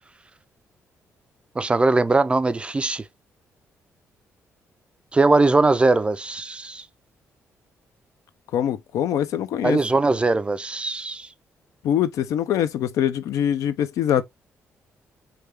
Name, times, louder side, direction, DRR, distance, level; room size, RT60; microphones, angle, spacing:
voice 1, 1.6-3.0 5.1-6.8 9.6-11.3, right 3 dB, 20° right, 0.3 m, -20 dB
voice 2, 8.5-9.8 11.8-14.2, left 10 dB, 80° left, 0.4 m, -23 dB
3.2 x 2.2 x 3.2 m
cardioid pair, 90°, 6 cm